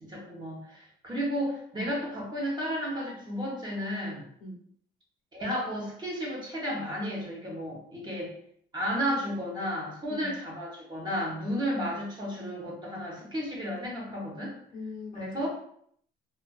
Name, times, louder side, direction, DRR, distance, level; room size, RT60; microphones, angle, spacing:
voice 1, 0.0-4.2 5.3-8.3 8.7-14.5 15.1-15.5, equal, 25° right, -3 dB, 0.9 m, -33 dB
voice 2, 14.7-15.5, left 2 dB, 55° left, -2 dB, 0.6 m, -41 dB
2.4 x 2.4 x 2.2 m, 0.66 s
cardioid pair, 110°, 17 cm